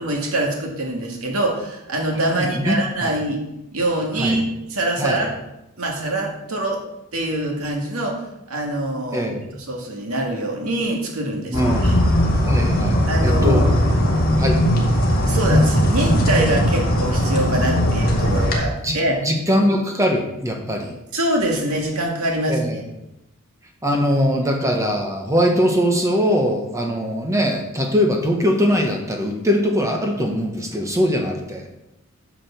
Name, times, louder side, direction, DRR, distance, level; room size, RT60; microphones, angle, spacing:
voice 1, 0.0-3.4 3.7-5.3 5.8-6.8 7.1-8.2 8.5-9.3 9.7-11.9 13.1-13.9 15.3-19.2 21.1-22.8, right 1 dB, 85° right, 0 dB, 2.1 m, -24 dB
voice 2, 2.3-3.1 4.2-4.4 5.0-5.3 9.1-9.6 11.5-12.0 12.4-13.6 14.4-14.6 18.8-19.0 19.2-20.9 22.5-22.8 23.8-31.7, equal, 15° right, 2 dB, 1.2 m, -21 dB
sound 1, 11.5-18.5, equal, 45° left, 2.1 m, -18 dB
9.5 x 5.0 x 7.0 m, 0.90 s
head